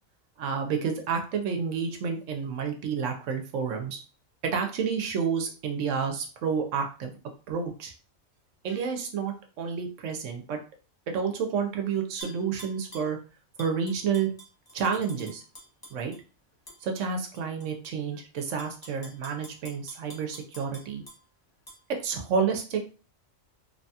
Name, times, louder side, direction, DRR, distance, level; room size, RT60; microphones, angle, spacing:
voice 1, 0.4-4.0 4.4-7.2 7.5-7.9 8.6-10.6 11.1-13.2 13.6-14.3 14.7-15.4 15.9-16.1 16.8-21.0 21.9-22.8, right 6 dB, 70° right, 4 dB, 0.9 m, -30 dB
Tap / Glass, 12.2-13.1 13.6-16.2 16.7-16.8 17.3-17.9 18.4-21.2 21.7-21.8, right 1 dB, 30° left, 0.4 m, -47 dB
2.9 x 2.2 x 2.7 m, 0.37 s
omnidirectional pair, 1.4 m